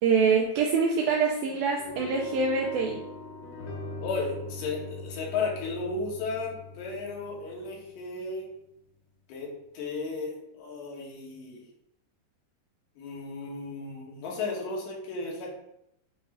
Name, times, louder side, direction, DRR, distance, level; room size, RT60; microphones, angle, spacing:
voice 1, 0.0-3.0, right 5 dB, 80° right, 0 dB, 2.1 m, -25 dB
sound 1, 1.8-8.0, left 2 dB, 70° left, 2.6 m, -41 dB
voice 2, 4.0-8.5 9.3-11.7 13.0-15.5, left 3 dB, 85° left, -3 dB, 3.8 m, -34 dB
9.0 x 3.2 x 3.8 m, 0.81 s
omnidirectional pair, 4.9 m